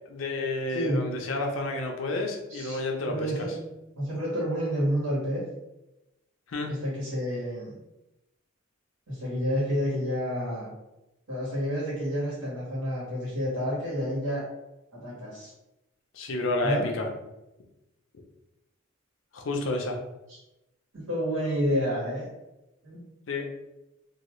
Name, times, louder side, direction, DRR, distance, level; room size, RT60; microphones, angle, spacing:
voice 1, 0.1-3.1 6.5-6.7 16.1-17.1 19.3-20.0 23.3-23.5, left 2 dB, 70° left, 2 dB, 0.5 m, -30 dB
voice 2, 0.7-1.1 2.5-3.5 4.0-5.4 6.7-7.8 9.1-10.7 11.3-14.4 14.9-15.5 16.6-16.8 20.3-20.4 20.9-22.3 22.8-23.0, equal, 85° right, -7 dB, 1.4 m, -29 dB
2.7 x 2.3 x 3.0 m, 0.95 s
head